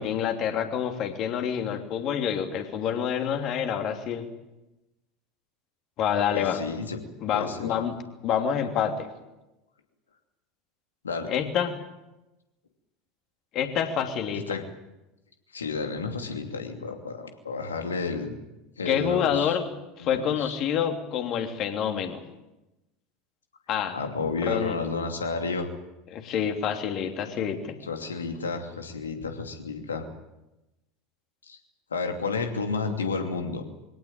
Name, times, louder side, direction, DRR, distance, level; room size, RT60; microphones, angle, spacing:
voice 1, 0.0-4.2 6.0-6.6 7.2-8.0 8.2-9.1 11.3-11.8 13.5-14.6 18.9-19.6 20.0-22.2 23.7-24.0 24.4-24.7 26.1-27.8, left 8 dB, 40° left, 5 dB, 3.0 m, -27 dB
voice 2, 6.3-7.0 7.3-7.7 11.0-11.3 14.5-14.6 15.5-18.4 18.8-19.6 20.0-20.6 23.9-25.7 27.8-30.0 31.4-31.6 31.9-33.6, left 4 dB, 75° left, 5 dB, 2.7 m, -31 dB
23.5 x 17.5 x 9.0 m, 0.99 s
figure-of-eight pair, 75°, 0 cm